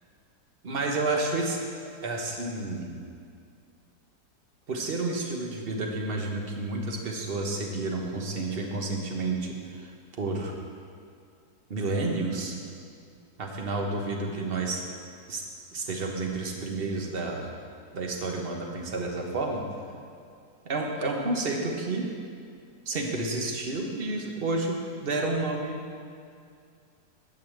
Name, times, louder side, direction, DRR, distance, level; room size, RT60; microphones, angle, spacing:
voice 1, 0.6-1.6 2.0-3.0 4.7-9.9 10.2-10.5 11.7-12.5 13.4-14.8 15.3-15.4 15.7-17.5 17.9-19.6 20.6-22.1 22.8-25.8, right 2 dB, 35° right, 1 dB, 1.3 m, -30 dB
11.0 x 5.7 x 7.9 m, 2.3 s
omnidirectional pair, 1.9 m